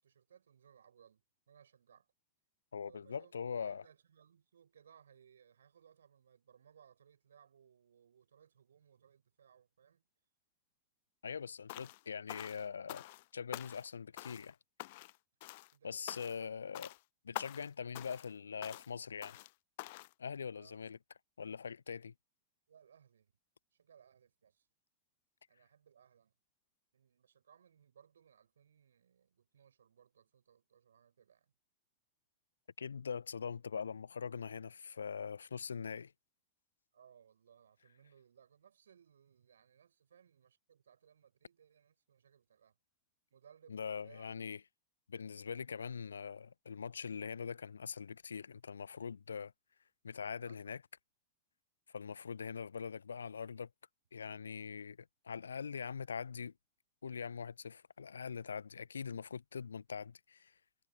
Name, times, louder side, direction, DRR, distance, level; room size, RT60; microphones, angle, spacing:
voice 1, 0.0-2.1 2.9-3.3 3.6-10.1 15.7-16.4 20.5-20.8 22.7-23.3 23.7-24.7 25.5-26.3 26.9-31.5 36.9-42.8 43.3-44.3 50.3-50.7, right 8 dB, 65° right, 7.6 m, -65 dB
voice 2, 2.7-3.8 11.2-13.0 13.3-14.5 15.8-16.9 17.2-19.4 20.2-21.0 21.4-22.1 32.8-36.1 43.7-44.6 45.1-49.5 50.0-50.8 51.9-53.7 54.1-55.0 55.2-56.5 57.0-60.5, left 6 dB, 70° left, 1.0 m, -42 dB
sound 1, 11.7-12.0 12.3-13.2 13.5-13.9 14.2-14.5 14.8-15.2 15.4-15.7 16.1-16.5 16.7-17.0 17.3-17.7 17.9-18.3 18.6-18.9 19.2-19.5 19.8-20.1, left 20 dB, 50° left, 0.8 m, -46 dB
figure-of-eight pair, 90°, 0 cm